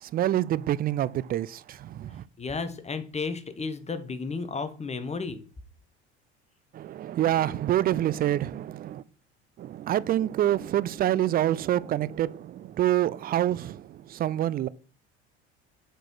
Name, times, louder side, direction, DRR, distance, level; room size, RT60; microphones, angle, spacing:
voice 1, 0.0-2.2 6.7-9.0 9.6-14.7, right 12 dB, 30° right, 0.4 m, -27 dB
voice 2, 2.4-5.4, left 4 dB, 20° left, 1.2 m, -33 dB
7.6 x 4.6 x 4.7 m
figure-of-eight pair, 65°, 34 cm